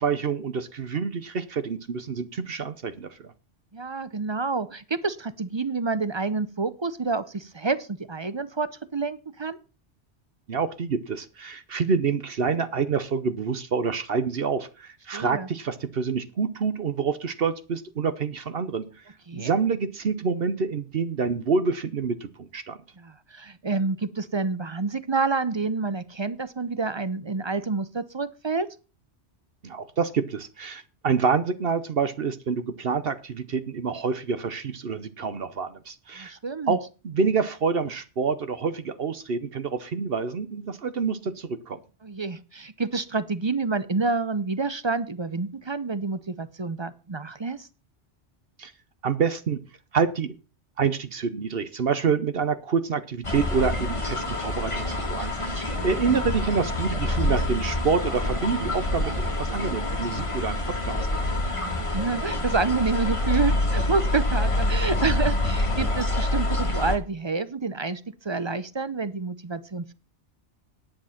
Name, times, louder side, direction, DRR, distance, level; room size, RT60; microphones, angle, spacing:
voice 1, 0.0-3.1 10.5-18.8 19.3-22.8 29.6-36.3 36.7-36.8 37.0-41.8 48.6-48.7 49.0-49.6 49.9-50.3 50.8-61.0, right 5 dB, 55° right, 12 dB, 1.0 m, -27 dB
voice 2, 3.7-9.6 15.1-15.5 19.3-19.5 23.0-28.7 36.2-36.8 42.0-47.7 55.8-56.0 61.4-69.9, right 4 dB, 30° right, 15 dB, 0.6 m, -28 dB
sound 1, 53.2-67.0, left 1 dB, 25° left, 1.8 m, -26 dB
10.0 x 8.9 x 5.7 m, 0.33 s
omnidirectional pair, 1.2 m